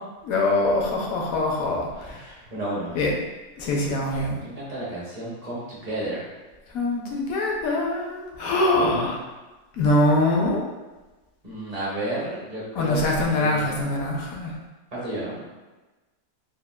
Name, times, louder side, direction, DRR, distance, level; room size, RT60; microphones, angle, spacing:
voice 1, 0.2-2.2 2.9-3.1 3.6-4.4 6.7-9.2 9.7-10.6 12.8-14.5, left 2 dB, 75° left, -1 dB, 1.0 m, -23 dB
voice 2, 2.1-3.0 4.4-6.3 11.4-13.0 13.3-13.9 14.9-15.5, right 1 dB, 35° right, -7 dB, 0.6 m, -32 dB
3.5 x 2.3 x 2.2 m, 1.2 s
omnidirectional pair, 1.5 m